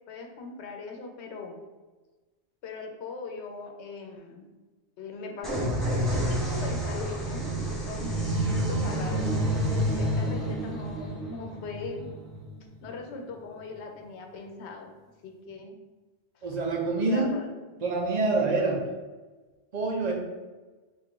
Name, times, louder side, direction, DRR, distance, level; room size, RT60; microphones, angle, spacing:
voice 1, 0.1-1.6 2.6-4.5 5.0-9.3 10.0-12.1 12.8-14.9 15.2-15.7 16.3-16.5 17.1-17.8, left 4 dB, 90° left, 3 dB, 0.9 m, -40 dB
sound 1, 5.4-13.0, right 1 dB, ahead, 0.7 m, -29 dB
voice 2, 16.4-17.3 17.8-18.8 19.7-20.1, right 3 dB, 45° right, 0 dB, 0.7 m, -26 dB
3.6 x 2.3 x 3.6 m, 1.3 s
omnidirectional pair, 1.1 m